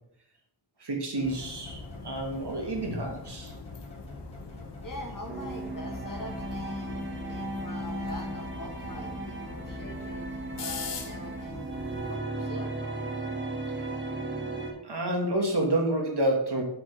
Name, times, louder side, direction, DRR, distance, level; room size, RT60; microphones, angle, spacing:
voice 1, 0.8-3.5 13.8-13.9 14.8-16.6, right 1 dB, 75° right, 1 dB, 1.9 m, -29 dB
sound 1, 1.2-12.2, left 4 dB, 85° left, 0.9 m, -42 dB
sound 2, 1.2-6.9, left 1 dB, 15° left, 2.2 m, -50 dB
voice 2, 4.8-10.3 10.5-11.7 12.1-12.7, left 1 dB, 50° left, 2 dB, 1.6 m, -43 dB
sound 3, 5.3-14.7, right 2 dB, 30° right, 1.5 m, -36 dB
7.9 x 6.2 x 3.5 m, 0.74 s
wide cardioid pair, 60°, 41 cm